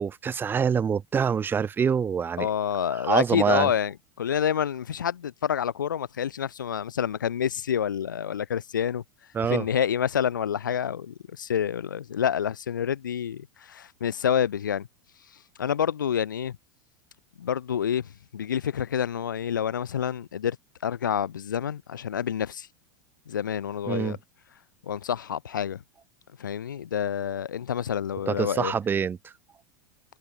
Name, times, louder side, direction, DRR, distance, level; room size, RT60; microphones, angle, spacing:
voice 1, 0.0-2.5 3.1-3.7 9.3-9.6 23.9-24.2 28.3-29.2, right 7 dB, 20° right, 0.7 m, -25 dB
voice 2, 2.4-9.0 9.5-14.9 15.6-16.6 17.4-20.6 20.8-22.7 23.3-24.2 24.8-25.8 26.4-28.7, left 8 dB, 80° left, 0.4 m, -28 dB
figure-of-eight pair, 90°, 10 cm